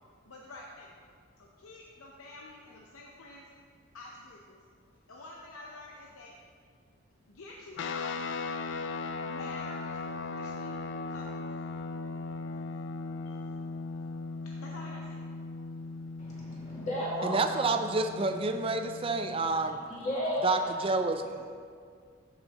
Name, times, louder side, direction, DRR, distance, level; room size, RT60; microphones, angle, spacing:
voice 1, 0.3-1.0 1.4-3.5 3.9-4.6 5.1-6.4 7.3-8.3 9.2-10.8 11.1-11.5 13.2-13.4 14.4-15.2, left 2 dB, 85° left, -2 dB, 0.8 m, -48 dB
sound 1, 7.8-19.5, left 3 dB, 55° left, 0.4 m, -38 dB
voice 2, 16.2-17.5 19.9-20.5, equal, 35° left, -7 dB, 2.2 m, -33 dB
voice 3, 17.2-19.8 20.4-21.4, right 3 dB, 25° right, 7 dB, 0.4 m, -29 dB
13.5 x 5.7 x 3.0 m, 2.1 s
head